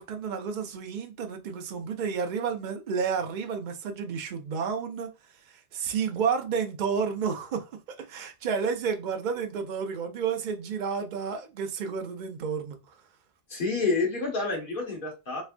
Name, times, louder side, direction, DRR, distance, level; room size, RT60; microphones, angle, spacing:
voice 1, 0.0-5.1 5.7-7.7 8.1-12.8, right 6 dB, 50° right, 0.7 m, -31 dB
voice 2, 13.5-15.4, left 3 dB, 50° left, 1.4 m, -28 dB
3.4 x 3.2 x 2.5 m
omnidirectional pair, 1.1 m